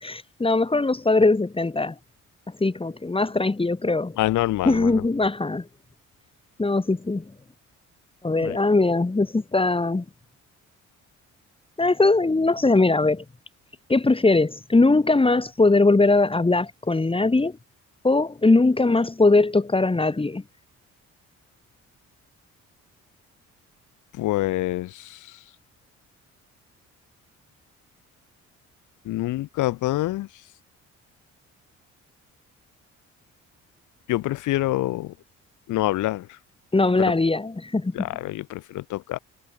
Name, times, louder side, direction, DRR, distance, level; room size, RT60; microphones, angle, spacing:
voice 1, 0.0-1.9 2.6-4.2 4.6-5.6 6.6-7.2 8.2-10.0 11.8-13.2 13.9-17.5 18.0-20.4 36.7-37.9, left 3 dB, 20° left, 3.3 m, -20 dB
voice 2, 4.2-5.0 8.4-8.6 24.2-25.2 29.1-30.3 34.1-35.1 35.7-36.3 37.0-37.1 37.9-39.2, left 16 dB, 80° left, 0.8 m, -26 dB
cardioid pair, 90°, 30 cm